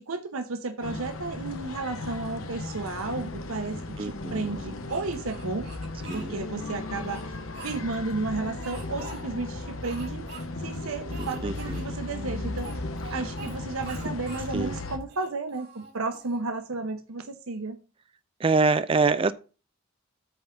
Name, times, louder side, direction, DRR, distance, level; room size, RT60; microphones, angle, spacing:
voice 1, 0.0-5.7 6.1-7.4 7.6-10.2 10.6-12.7 13.1-17.8, right 3 dB, 90° right, 0.8 m, -33 dB
sound 1, 0.8-15.0, left 2 dB, 85° left, 1.2 m, -36 dB
sound 2, 3.1-14.0, left 2 dB, 50° left, 0.6 m, -44 dB
voice 2, 4.0-4.6 6.1-6.4 11.2-12.0 13.1-13.2 14.5-14.8 18.4-19.3, right 4 dB, 25° right, 0.3 m, -26 dB
Speech, 4.9-6.3 6.9-8.1 8.6-9.2 9.8-10.4 10.7-10.8 11.1-11.9 12.6-13.6 13.8-14.5 15.0-16.4, right 4 dB, 50° right, 3.0 m, -45 dB
8.8 x 3.8 x 7.0 m
head